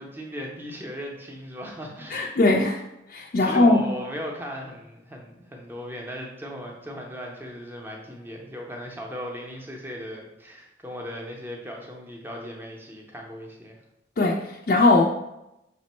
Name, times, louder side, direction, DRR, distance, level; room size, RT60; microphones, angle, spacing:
voice 1, 0.0-2.3 3.4-13.7, equal, 10° right, 0 dB, 0.6 m, -37 dB
voice 2, 2.1-2.8 3.1-3.9 14.2-15.0, left 2 dB, 45° left, -2 dB, 0.4 m, -20 dB
5.9 x 2.0 x 4.2 m, 0.89 s
head